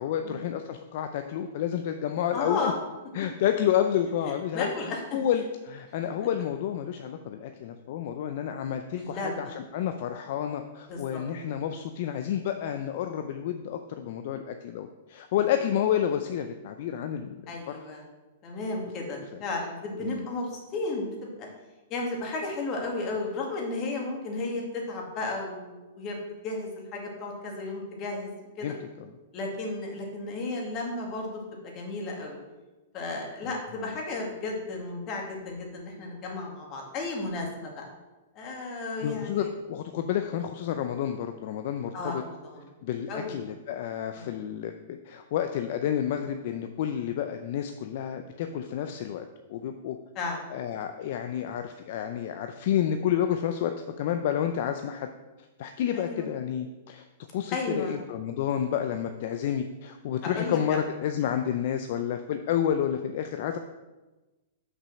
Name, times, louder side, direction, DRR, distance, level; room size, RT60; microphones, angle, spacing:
voice 1, 0.0-2.7 3.1-17.8 20.0-20.3 28.6-29.1 33.4-34.0 39.0-42.2 42.8-49.2 49.5-50.0 50.5-53.7 54.0-55.1 55.6-57.0 57.3-63.6, left 9 dB, 55° left, 7 dB, 0.5 m, -30 dB
voice 2, 2.3-2.8 4.5-5.2 9.0-9.5 10.9-11.2 17.5-18.0 18.4-21.3 21.9-26.2 26.4-28.7 29.3-32.4 32.9-37.8 38.4-39.5 41.9-42.7 43.1-43.4 44.2-44.4 50.2-50.4 55.9-56.3 57.5-58.0 60.2-60.8, left 2 dB, 30° left, 0 dB, 2.1 m, -34 dB
6.1 x 5.4 x 6.4 m, 1.1 s
hypercardioid pair, 145°, 0 cm